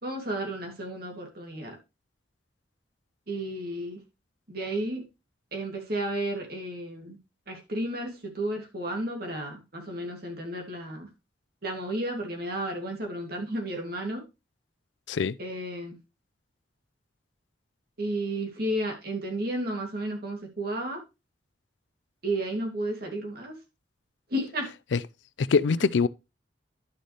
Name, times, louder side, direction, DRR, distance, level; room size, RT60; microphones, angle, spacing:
voice 1, 0.0-1.7 3.3-4.0 4.5-5.0 5.5-7.2 7.5-11.1 11.6-14.2 15.4-15.9 18.0-21.0 22.2-23.5 24.3-24.7, right 1 dB, 60° right, 2.8 m, -32 dB
voice 2, 25.4-26.1, left 5 dB, 85° left, 0.4 m, -23 dB
11.0 x 6.4 x 3.4 m
head